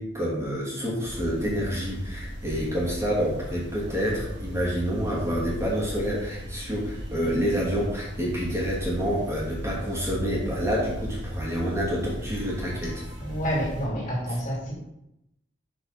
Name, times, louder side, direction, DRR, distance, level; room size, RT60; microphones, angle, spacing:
voice 1, 0.0-13.0 14.3-14.4, equal, 15° right, 2.4 m, -28 dB
sound 1, 1.0-13.9, equal, 65° right, 2.0 m, -37 dB
voice 2, 13.2-14.7, equal, 40° left, 2.7 m, -28 dB
6.3 x 5.4 x 5.7 m
head